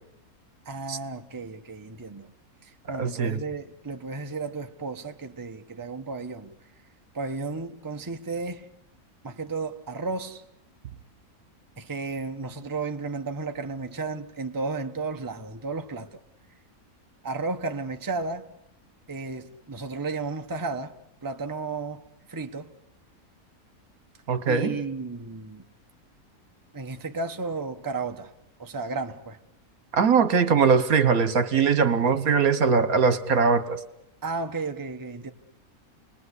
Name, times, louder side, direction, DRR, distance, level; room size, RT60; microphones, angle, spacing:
voice 1, 0.6-2.3 2.6-6.5 7.1-8.7 9.2-10.4 11.8-16.2 17.2-18.5 19.1-20.9 21.2-22.0 22.3-22.7 24.5-25.6 26.7-28.3 28.6-29.4 34.2-35.3, right 3 dB, 15° right, 1.0 m, -33 dB
voice 2, 3.0-3.4 24.3-24.8 29.9-33.8, right 5 dB, 70° right, 1.6 m, -21 dB
29.0 x 20.5 x 8.2 m
omnidirectional pair, 1.6 m